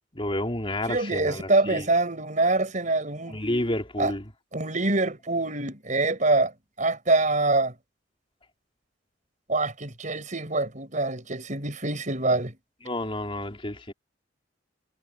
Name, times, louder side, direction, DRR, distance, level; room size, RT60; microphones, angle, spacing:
voice 1, 0.1-1.9 3.3-4.3 12.8-13.9, left 1 dB, 30° left, 3.6 m, -30 dB
voice 2, 0.9-3.4 4.0-4.1 4.5-6.5 6.8-7.7 9.5-12.5, right 2 dB, 40° right, 5.6 m, -25 dB
head